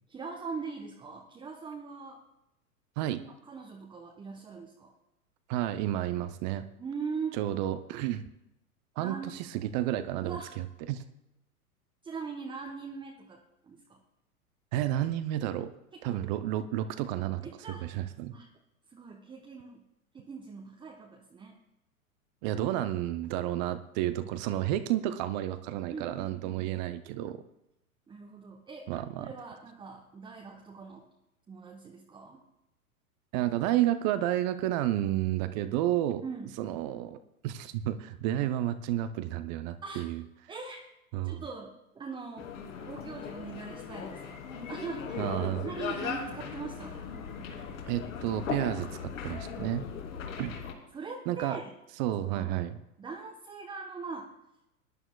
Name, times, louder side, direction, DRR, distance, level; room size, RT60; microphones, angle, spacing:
voice 1, 0.0-2.2 3.2-4.9 6.8-7.4 9.0-9.4 10.2-10.5 12.0-14.0 15.9-16.3 17.4-17.9 18.3-18.5 18.9-19.8 20.1-21.5 25.9-26.8 28.1-31.0 31.5-32.4 36.2-36.6 39.8-40.1 40.5-40.9 41.2-42.5 42.8-44.4 44.7-45.3 45.6-47.1 49.5-49.8 50.9-51.7 52.2-52.6 53.0-54.3, right 5 dB, 10° right, 0 dB, 0.9 m, -41 dB
voice 2, 5.5-6.6 7.4-8.2 9.0-11.0 14.7-15.7 16.0-17.4 17.7-18.3 22.4-27.4 28.9-29.3 33.3-36.2 36.6-40.2 41.1-41.4 45.2-45.7 47.9-49.9 50.4-50.5 51.3-51.6 52.0-52.8, right 13 dB, 30° right, 11 dB, 0.6 m, -31 dB
sound 1, 42.4-50.7, left 6 dB, 60° left, 2.7 m, -38 dB
21.0 x 11.0 x 2.3 m, 0.89 s
figure-of-eight pair, 100°, 45 cm